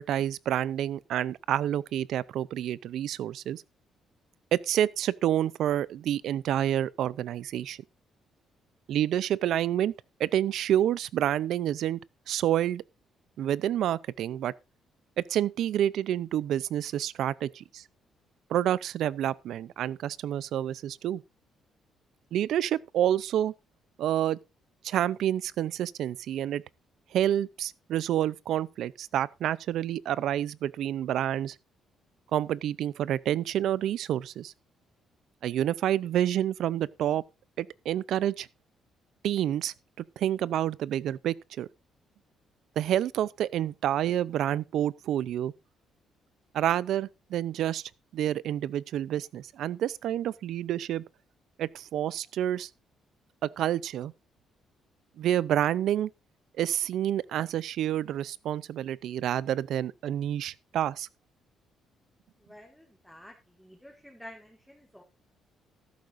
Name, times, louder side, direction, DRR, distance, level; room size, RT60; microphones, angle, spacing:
voice 1, 0.0-3.6 4.5-7.8 8.9-9.9 10.2-12.0 12.3-12.8 13.4-14.5 15.2-17.8 18.5-21.2 22.3-23.5 24.0-24.4 24.8-26.6 27.1-31.6 32.3-34.5 35.4-37.2 37.6-38.5 39.2-41.7 42.8-45.5 46.5-51.0 51.6-52.7 53.4-54.1 55.2-56.1 56.6-61.1, right 11 dB, 70° right, 0.5 m, -28 dB
voice 2, 62.5-65.0, left 1 dB, ahead, 1.9 m, -50 dB
13.5 x 12.0 x 2.6 m
cardioid pair, 120°, 0 cm